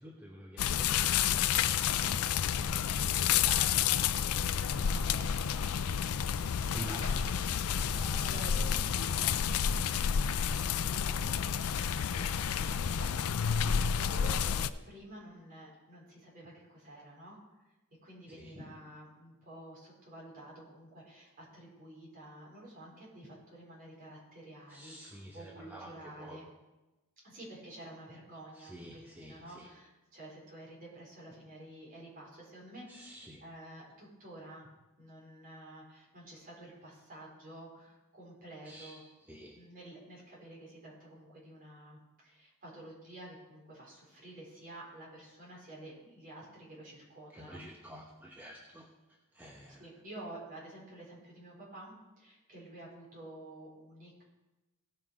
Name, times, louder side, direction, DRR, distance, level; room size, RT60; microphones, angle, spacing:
voice 1, 0.0-2.5 3.0-3.9 4.7-5.8 6.7-7.4 7.8-8.3 13.5-13.9 18.4-18.5 24.7-26.5 28.5-29.7 32.9-33.4 38.6-39.6 47.3-48.9 49.3-49.8, right 1 dB, 10° right, -1 dB, 0.9 m, -49 dB
sound 1, 0.6-14.7, left 8 dB, 80° left, 0.4 m, -30 dB
voice 2, 3.4-3.8 4.6-5.8 6.9-7.3 8.1-13.3 14.0-17.4 18.0-26.5 27.2-34.7 35.0-39.0 39.5-47.6 49.8-54.2, right 1 dB, 40° right, -4 dB, 4.4 m, -50 dB
17.0 x 5.8 x 4.8 m, 1.1 s
head